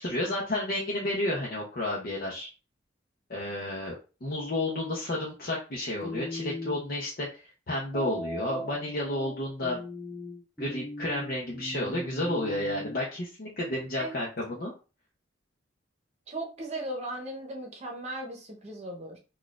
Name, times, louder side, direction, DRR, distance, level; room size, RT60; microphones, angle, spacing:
voice 1, 0.0-2.5 3.3-3.9 4.2-9.8 10.6-14.7, left 1 dB, 55° left, -3 dB, 0.7 m, -31 dB
sound 1, 6.0-6.8 7.9-13.0, left 1 dB, 5° left, 0.3 m, -39 dB
voice 2, 14.0-14.3 16.3-19.2, right 1 dB, 35° right, 1 dB, 0.8 m, -37 dB
4.0 x 2.3 x 2.4 m, 0.33 s
head